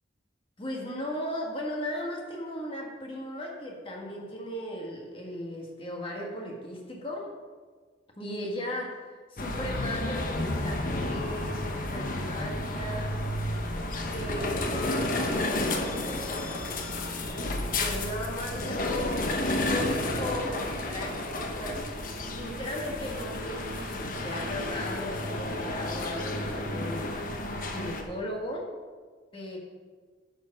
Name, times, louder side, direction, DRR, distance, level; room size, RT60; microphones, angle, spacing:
voice 1, 0.6-7.3 8.2-11.6 11.9-13.2 14.1-16.7 17.8-19.3 19.6-21.9 22.1-27.2 27.7-28.7 29.3-29.6, left 1 dB, 30° left, -1 dB, 1.5 m, -36 dB
sound 1, 9.4-28.0, left 1 dB, 45° left, 1.1 m, -31 dB
10.5 x 6.8 x 5.4 m, 1.5 s
head